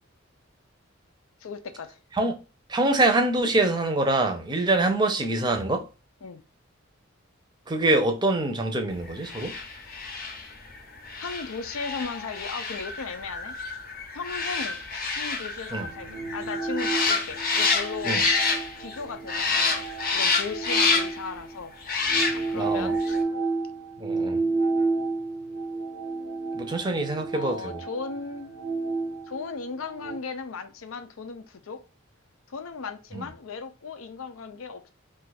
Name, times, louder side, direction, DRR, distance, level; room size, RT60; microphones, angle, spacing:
voice 1, 1.4-2.0 6.2-6.4 9.9-10.0 11.2-13.8 14.1-14.8 15.1-19.8 20.1-23.3 27.3-28.5 29.3-31.8 32.5-34.9, left 4 dB, 80° left, 0.5 m, -37 dB
voice 2, 2.7-5.8 7.7-9.5 15.7-15.9 18.0-18.2 22.5-22.9 24.0-24.4 26.5-27.8 33.1-33.2, right 2 dB, 20° right, 0.6 m, -24 dB
sound 1, 9.2-19.0 19.3-21.3 21.8-22.7 23.0-23.1, left 4 dB, 45° left, 0.7 m, -28 dB
sound 2, 15.7-21.5 22.0-30.2, right 3 dB, 80° right, 0.6 m, -31 dB
2.5 x 2.4 x 4.0 m
head